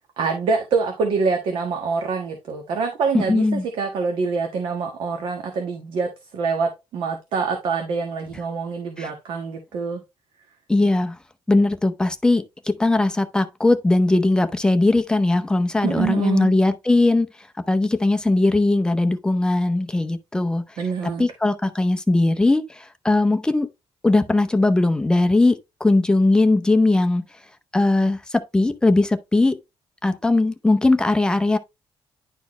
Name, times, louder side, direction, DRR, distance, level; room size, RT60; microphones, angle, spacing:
voice 1, 0.2-10.0 15.8-16.5 20.8-21.3, right 5 dB, 65° right, 1.4 m, -25 dB
voice 2, 3.1-3.6 9.0-9.1 10.7-11.2 11.5-12.4 12.8-17.3 17.7-20.7 21.0-23.7 24.0-27.2 27.7-28.2 28.5-29.6 30.0-31.6, left 2 dB, 10° left, 0.6 m, -19 dB
10.5 x 4.3 x 3.1 m
cardioid pair, 160°, 9 cm